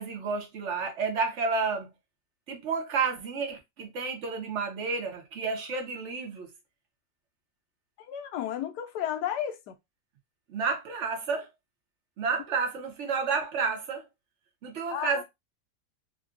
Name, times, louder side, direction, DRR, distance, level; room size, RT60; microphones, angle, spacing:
voice 1, 0.0-1.9 2.5-6.5 10.5-11.5 12.2-14.0 14.6-15.2, right 5 dB, 55° right, 1.0 m, -30 dB
voice 2, 8.0-9.7 14.9-15.2, left 10 dB, 85° left, 1.2 m, -33 dB
3.6 x 2.2 x 2.4 m
omnidirectional pair, 1.7 m